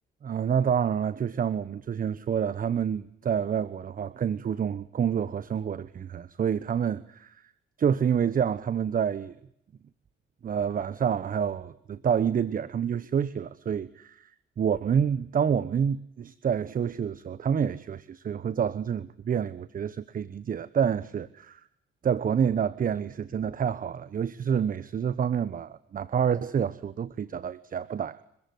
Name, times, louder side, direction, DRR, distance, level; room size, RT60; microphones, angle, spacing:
voice 1, 0.2-7.4 7.8-9.3 10.4-14.3 14.6-21.6 22.0-28.2, right 8 dB, 45° right, 1.1 m, -28 dB
30.0 x 15.0 x 9.4 m
cardioid pair, 80°, 20 cm